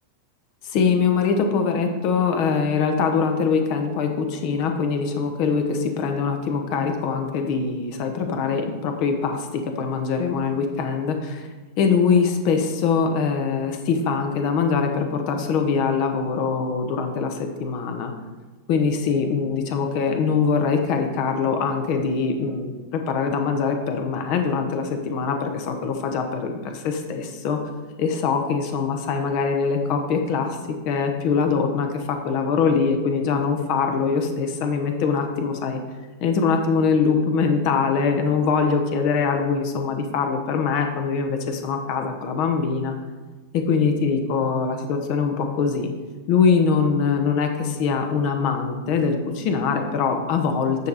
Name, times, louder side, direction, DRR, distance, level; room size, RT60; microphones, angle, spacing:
voice 1, 0.6-11.5 11.8-18.1 18.7-27.6 28.0-30.6 30.8-35.8 36.2-42.9 43.5-45.9 46.3-50.9, left 5 dB, 45° left, 5 dB, 1.0 m, -23 dB
9.5 x 4.7 x 4.1 m, 1.3 s
figure-of-eight pair, 90°, 0 cm